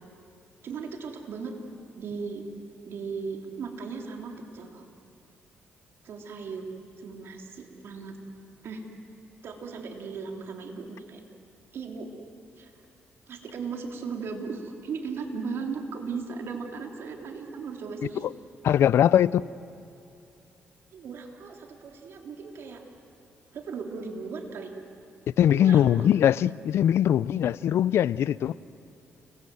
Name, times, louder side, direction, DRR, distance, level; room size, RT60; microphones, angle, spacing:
voice 1, 0.6-1.5 2.0-2.5 2.9-4.9 6.0-6.7 7.0-8.2 8.6-8.8 9.4-11.2 11.7-12.1 12.6-12.7 13.3-18.3 20.9-22.8 23.5-24.7 25.5-26.1, right 5 dB, 70° right, 1 dB, 3.5 m, -37 dB
voice 2, 18.6-19.4 25.4-28.5, left 10 dB, 75° left, 19 dB, 0.5 m, -21 dB
30.0 x 22.0 x 7.9 m, 2.7 s
cardioid pair, 90°, 4 cm